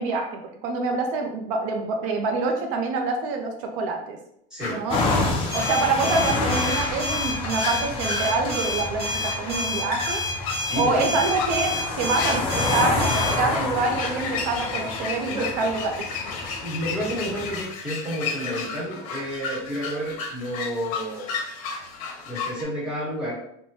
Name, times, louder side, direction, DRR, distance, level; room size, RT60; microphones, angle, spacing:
voice 1, 0.0-4.2 4.7-5.0 5.5-10.2 10.7-16.1, right 3 dB, 70° right, 3 dB, 0.5 m, -26 dB
voice 2, 4.5-4.8 10.6-11.1 15.2-15.5 16.6-21.3 22.2-23.3, equal, 5° right, -9 dB, 1.3 m, -30 dB
sound 1, 4.6-22.6, left 4 dB, 75° left, 0.6 m, -34 dB
sound 2, 4.9-17.6, left 2 dB, 30° left, 0.5 m, -29 dB
sound 3, 5.5-13.3, left 2 dB, 35° right, 0.9 m, -29 dB
3.2 x 2.1 x 2.7 m, 0.73 s
cardioid pair, 160°, 17 cm